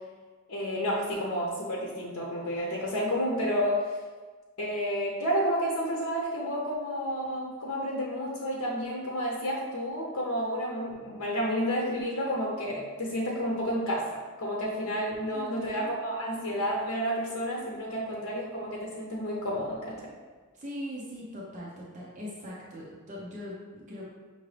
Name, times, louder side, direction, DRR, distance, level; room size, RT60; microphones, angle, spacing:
voice 1, 0.5-3.8 4.6-20.0, equal, 85° left, -3 dB, 0.8 m, -30 dB
voice 2, 15.3-15.9 20.5-24.1, equal, 35° right, -5 dB, 0.7 m, -41 dB
5.9 x 2.6 x 3.3 m, 1.4 s
head